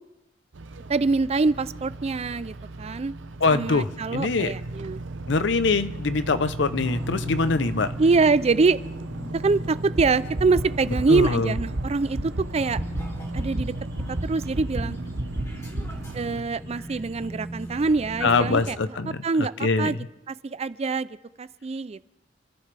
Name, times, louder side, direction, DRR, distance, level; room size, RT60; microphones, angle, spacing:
sound 1, 0.5-16.4, right 2 dB, 85° right, 0.7 m, -36 dB
voice 1, 0.9-3.1 3.5-5.0 8.0-8.8 9.3-12.8 13.3-13.7 14.1-15.0 16.1-18.8 19.2-19.5 19.8-20.0 20.3-21.1 21.4-22.0, right 4 dB, 35° right, 16 dB, 0.4 m, -24 dB
voice 2, 3.4-4.5 5.3-7.9 11.1-11.5 18.2-19.2 19.6-20.0, left 3 dB, 70° left, 12 dB, 0.7 m, -23 dB
sound 2, 6.8-18.7, equal, 15° left, 2.5 m, -40 dB
sound 3, 9.9-10.0 10.3-10.6 10.9-11.2 11.5-11.8 12.1-12.4 12.7-13.0 13.4-13.6 13.9-14.2 14.5-14.8 15.1-15.4 15.7-16.0, right 1 dB, 70° right, 1.3 m, -28 dB
28.0 x 14.0 x 3.4 m, 0.97 s
head